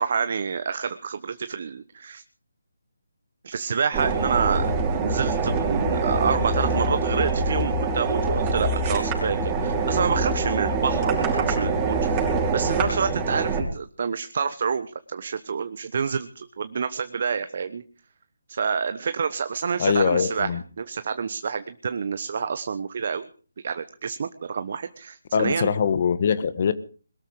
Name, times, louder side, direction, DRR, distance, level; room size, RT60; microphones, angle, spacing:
voice 1, 0.0-2.2 3.4-4.7 5.0-17.8 18.5-20.5 20.8-23.3 23.6-25.7, right 6 dB, 50° right, 11 dB, 1.1 m, -28 dB
sound 1, 3.9-13.6, right 3 dB, 15° right, 5.4 m, -24 dB
voice 2, 19.8-20.6 25.3-26.7, left 6 dB, 40° left, 14 dB, 1.4 m, -22 dB
22.0 x 13.0 x 4.9 m, 0.40 s
figure-of-eight pair, 160°, 0 cm